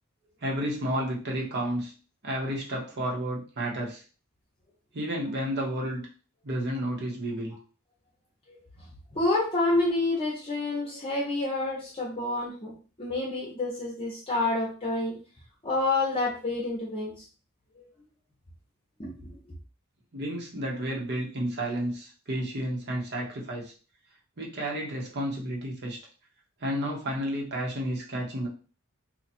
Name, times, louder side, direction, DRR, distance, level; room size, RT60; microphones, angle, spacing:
voice 1, 0.4-1.9 2.2-4.0 4.9-6.1 6.4-7.5 20.1-23.7 24.4-26.0 26.6-28.5, right 1 dB, 50° right, -2 dB, 1.2 m, -31 dB
voice 2, 9.1-12.7 13.0-15.2 15.6-17.1 17.8-17.9 19.0-19.1, left 2 dB, 25° left, -3 dB, 0.9 m, -28 dB
2.9 x 2.4 x 4.2 m, 0.37 s
head